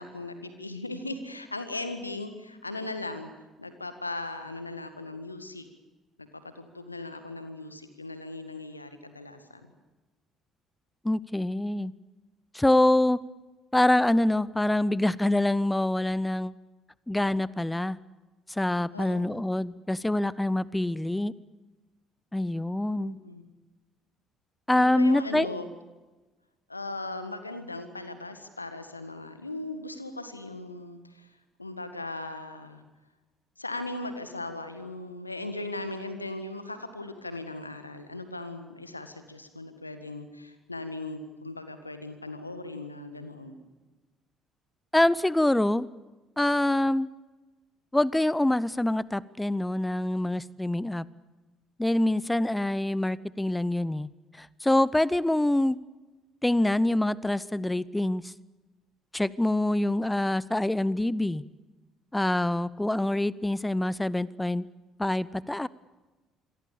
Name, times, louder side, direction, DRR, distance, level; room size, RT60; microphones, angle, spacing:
voice 1, 0.0-3.3 3.6-5.7 6.2-9.6 18.9-19.4 23.0-23.4 24.7-25.7 26.7-31.3 31.6-32.8 33.6-43.6, left 2 dB, 90° left, 10 dB, 1.7 m, -38 dB
voice 2, 11.0-11.9 12.5-13.2 13.7-16.5 17.1-18.0 18.5-21.3 22.3-23.2 24.7-25.5 44.9-45.9 46.4-47.1 47.9-51.1 51.8-54.1 54.4-55.8 56.4-58.3 59.1-61.4 62.1-64.7 65.0-65.7, left 1 dB, 10° left, 21 dB, 0.7 m, -25 dB
27.0 x 22.5 x 7.1 m, 1.2 s
figure-of-eight pair, 50°, 0 cm